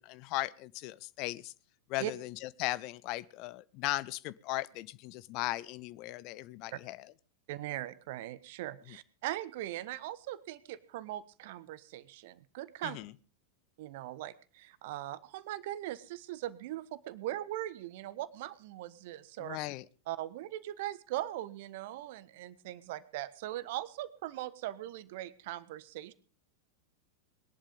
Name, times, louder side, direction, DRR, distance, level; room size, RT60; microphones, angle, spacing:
voice 1, 0.0-1.5 1.9-7.1 8.9-9.0 12.8-13.1 19.4-19.9, left 17 dB, 40° left, 19 dB, 0.8 m, -37 dB
voice 2, 7.5-13.0 13.8-19.6 20.1-26.1, right 14 dB, 50° right, 17 dB, 1.2 m, -40 dB
21.0 x 11.5 x 5.2 m, 0.38 s
figure-of-eight pair, 90°, 0 cm